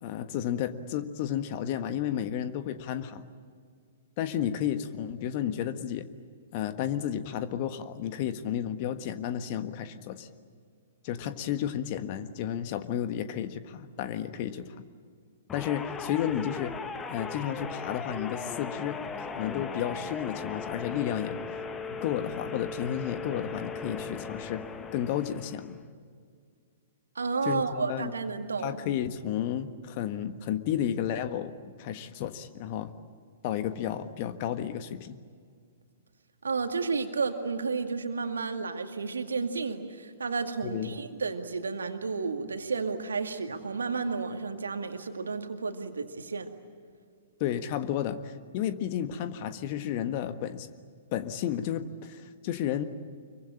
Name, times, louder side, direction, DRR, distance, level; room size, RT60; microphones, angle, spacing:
voice 1, 0.0-3.3 4.2-6.1 6.5-10.3 11.0-14.8 15.5-16.7 17.1-21.4 22.0-24.6 24.9-25.7 27.4-28.1 28.6-31.5 31.8-32.9 33.4-35.2 40.6-40.9 47.4-50.7 51.1-52.8, left 10 dB, 40° left, 10 dB, 1.5 m, -32 dB
sound 1, 15.5-25.9, left 5 dB, 15° left, 1.4 m, -38 dB
voice 2, 27.2-28.8 36.4-46.5, right 4 dB, 70° right, 6 dB, 2.2 m, -32 dB
25.5 x 23.5 x 8.8 m, 2.1 s
figure-of-eight pair, 110°, 0 cm